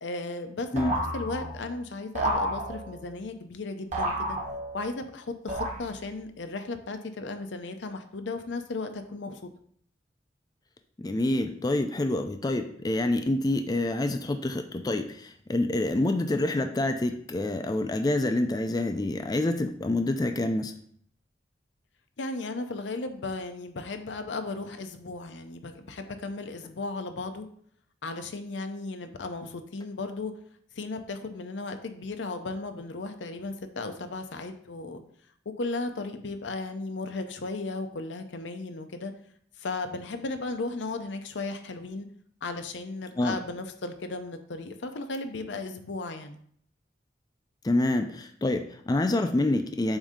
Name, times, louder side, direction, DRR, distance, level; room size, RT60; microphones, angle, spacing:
voice 1, 0.0-0.7 0.9-4.4 4.7-9.5 22.2-27.5 28.0-30.3 30.8-35.0 35.5-39.1 39.6-42.1 42.4-46.4, left 3 dB, 85° left, 7 dB, 0.6 m, -35 dB
sound 1, 0.8-1.7 2.1-3.1 3.9-4.9 5.5-6.2, right 1 dB, 40° right, 1.3 m, -31 dB
voice 2, 11.0-20.7 43.2-43.4 47.6-50.0, left 2 dB, 20° left, 6 dB, 0.4 m, -27 dB
7.1 x 2.7 x 4.9 m, 0.63 s
head